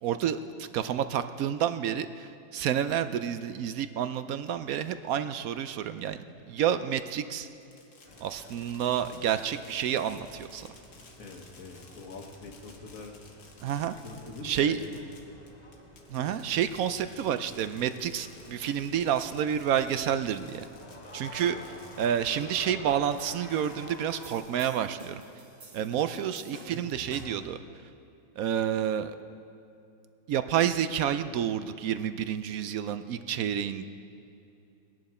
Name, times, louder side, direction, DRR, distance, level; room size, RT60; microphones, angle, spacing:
voice 1, 0.0-6.2 6.5-7.5 8.2-10.7 13.6-13.9 14.4-14.8 16.1-20.6 21.1-21.6 22.0-25.2 25.7-27.6 28.4-29.2 30.3-33.9, right 9 dB, 70° right, 11 dB, 1.0 m, -29 dB
Fireworks, 7.4-22.6 23.0-24.9, left 4 dB, 90° left, 2.0 m, -55 dB
sound 1, 8.0-24.4, left 1 dB, 30° left, 1.5 m, -50 dB
voice 2, 11.2-13.5 13.8-15.3 21.4-21.7, left 3 dB, 60° left, 4 dB, 1.5 m, -45 dB
sound 2, 24.2-27.5, right 2 dB, 35° right, 1.3 m, -47 dB
19.5 x 10.5 x 4.3 m, 2.7 s
omnidirectional pair, 1.6 m